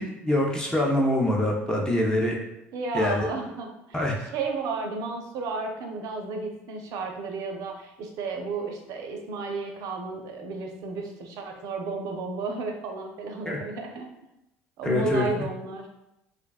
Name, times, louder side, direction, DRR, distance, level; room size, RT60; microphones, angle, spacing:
voice 1, 0.0-2.4 2.9-3.3 3.9-4.1 13.5-13.6 14.8-15.3, left 1 dB, 10° left, -2 dB, 0.5 m, -24 dB
voice 2, 2.7-4.0 4.3-14.1 14.8-15.9, right 3 dB, 65° right, 3 dB, 0.5 m, -33 dB
2.5 x 2.2 x 2.3 m, 0.87 s
hypercardioid pair, 75°, 7 cm